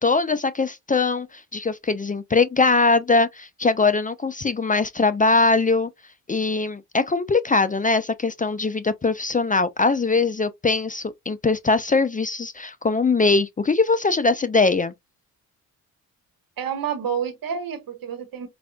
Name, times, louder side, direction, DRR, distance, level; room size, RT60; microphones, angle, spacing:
voice 1, 0.0-5.9 6.3-14.9, left 3 dB, 20° left, 0.5 m, -21 dB
voice 2, 16.6-18.5, right 7 dB, 65° right, 1.3 m, -29 dB
4.7 x 2.5 x 2.2 m
supercardioid pair, 60°, 36 cm